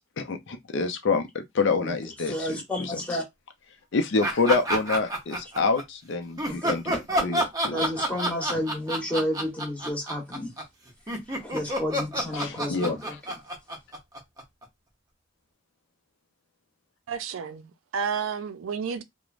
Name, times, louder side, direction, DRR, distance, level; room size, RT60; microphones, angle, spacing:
voice 1, 0.2-3.0 3.9-7.9 12.3-13.0, left 4 dB, 65° left, 0.5 m, -27 dB
voice 2, 2.3-3.2 6.5-7.3 7.7-10.5 11.4-13.1, left 1 dB, 5° left, 1.0 m, -31 dB
sound 1, 4.2-5.8 6.4-14.6, right 1 dB, 20° right, 0.7 m, -28 dB
voice 3, 17.1-19.0, right 6 dB, 85° right, 0.4 m, -31 dB
3.1 x 2.1 x 2.4 m
head